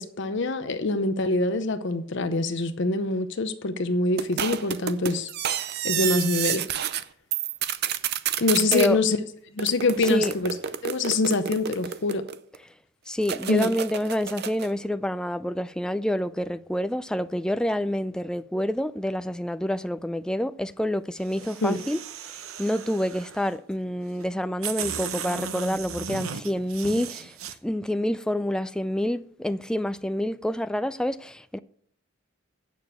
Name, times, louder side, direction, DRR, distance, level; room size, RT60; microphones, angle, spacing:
voice 1, 0.0-5.3 5.8-6.6 8.4-9.2 9.5-10.5 10.8-12.2 13.5-13.7 21.6-21.8, left 3 dB, 60° left, 0.7 m, -25 dB
sound 1, 4.2-7.0 7.3-8.9 9.6-12.6 13.2-14.7, right 9 dB, 50° right, 0.5 m, -30 dB
voice 2, 13.1-22.0 22.3-27.4 27.6-31.6, equal, 5° left, 0.3 m, -28 dB
sound 2, 21.2-23.5 24.2-24.3 24.6-27.5, right 7 dB, 85° right, 0.8 m, -36 dB
9.2 x 6.8 x 7.8 m
head